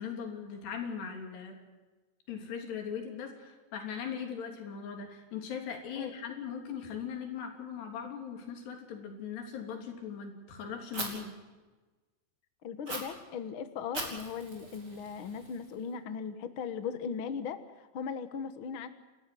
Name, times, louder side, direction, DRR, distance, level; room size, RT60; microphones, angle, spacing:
voice 1, 0.0-1.6 2.3-11.4, left 7 dB, 90° left, 4 dB, 5.4 m, -39 dB
Fire, 10.9-11.1 12.9-13.0 13.9-15.9, right 2 dB, 25° right, 4.8 m, -40 dB
voice 2, 12.6-18.9, left 6 dB, 65° left, 10 dB, 1.2 m, -38 dB
29.5 x 13.5 x 7.8 m, 1.2 s
omnidirectional pair, 4.6 m